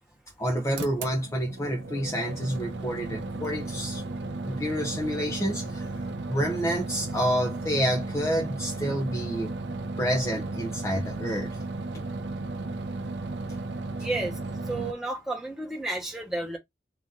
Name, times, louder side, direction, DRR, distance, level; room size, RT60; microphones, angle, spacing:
voice 1, 0.4-4.0 4.4-9.5 10.0-11.6 11.9-12.0 14.0-14.1, equal, 15° left, 0.7 m, -29 dB
sound 1, 0.8-14.9, right 2 dB, 65° right, 0.6 m, -34 dB
voice 2, 14.0-14.4 14.7-16.6, right 2 dB, ahead, 1.2 m, -31 dB
3.8 x 2.8 x 3.5 m
head